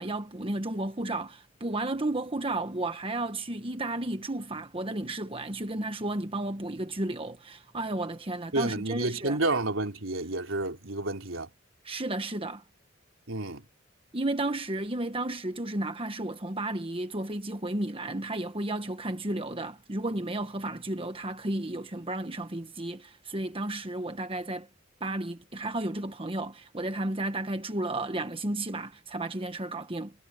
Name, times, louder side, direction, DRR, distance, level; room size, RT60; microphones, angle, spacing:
voice 1, 0.0-9.4 11.8-12.6 14.1-24.7 25.0-30.1, right 2 dB, 30° right, 1.2 m, -33 dB
voice 2, 8.5-11.5 13.3-13.6, right 2 dB, 85° right, 3.6 m, -30 dB
head